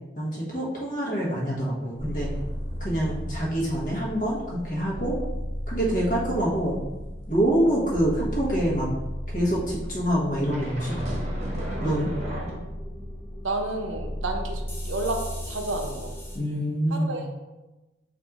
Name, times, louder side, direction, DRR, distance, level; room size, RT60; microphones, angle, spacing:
voice 1, 0.1-2.3 2.8-5.1 5.7-6.8 7.3-8.9 9.3-11.0 11.8-12.1 16.3-17.2, right 1 dB, 45° left, -5 dB, 1.2 m, -26 dB
sound 1, 1.9-16.4, equal, 10° left, 0.6 m, -34 dB
sound 2, 2.0-3.9 4.2-4.5 4.9-8.5 9.4-12.5, right 1 dB, 35° right, 1.0 m, -39 dB
voice 2, 13.4-16.1 16.9-17.3, right 2 dB, 80° right, 3 dB, 0.7 m, -31 dB
4.2 x 2.6 x 4.6 m, 1.1 s
head